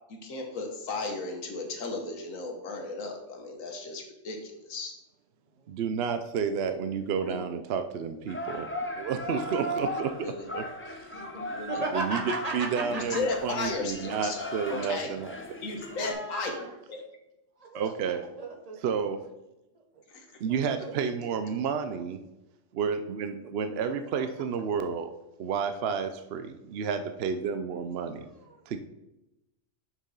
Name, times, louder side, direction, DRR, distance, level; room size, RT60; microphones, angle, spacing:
voice 1, 0.1-4.9 7.2-7.4 10.2-10.5 11.5-11.8 12.8-15.1 15.6-17.0 20.1-20.2, left 3 dB, 90° left, 3 dB, 1.5 m, -35 dB
voice 2, 5.7-10.1 10.5-11.1 11.9-12.2 12.5-15.3 17.7-18.2 18.8-19.2 20.4-22.2 22.7-25.1 25.4-28.3 28.7-28.8, right 6 dB, 60° right, 8 dB, 0.7 m, -31 dB
sound 1, 8.3-16.1, equal, 15° left, 0.4 m, -37 dB
voice 3, 11.7-13.0 14.5-14.9 15.9-16.7 17.6-18.8 20.5-20.9 21.5-21.6 28.1-28.6, right 3 dB, 30° right, 0 dB, 1.2 m, -37 dB
6.8 x 5.9 x 3.9 m, 0.93 s
omnidirectional pair, 1.3 m